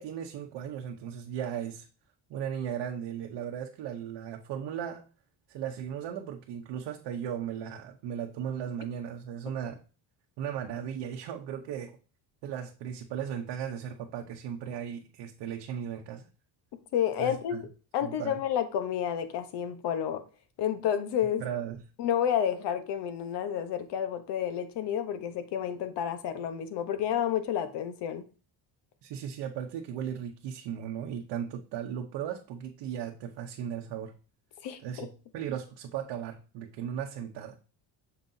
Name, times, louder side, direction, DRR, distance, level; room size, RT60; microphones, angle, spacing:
voice 1, 0.0-1.9 2.3-5.0 5.5-9.8 10.4-12.0 12.4-16.2 17.2-17.6 18.0-18.4 21.4-21.8 29.0-34.1 34.8-37.6, right 9 dB, 70° right, 1 dB, 0.9 m, -36 dB
voice 2, 16.9-17.7 17.9-20.2 20.6-21.4 22.0-28.2 34.6-35.1, left 9 dB, 70° left, 10 dB, 1.1 m, -30 dB
6.8 x 5.4 x 2.7 m, 0.35 s
cardioid pair, 130°, 43 cm